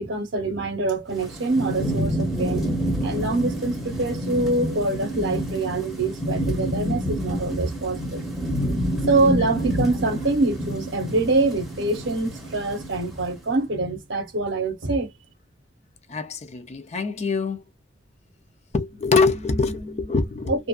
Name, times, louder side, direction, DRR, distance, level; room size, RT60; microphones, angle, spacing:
voice 1, 0.0-2.7 3.0-8.3 9.1-15.1 20.5-20.7, right 2 dB, 65° right, 0.8 m, -25 dB
Thunderstorm / Rain, 1.1-13.4, equal, ahead, 0.8 m, -28 dB
voice 2, 16.1-17.6 18.7-20.6, left 4 dB, 35° left, 0.4 m, -24 dB
2.6 x 2.4 x 2.2 m
head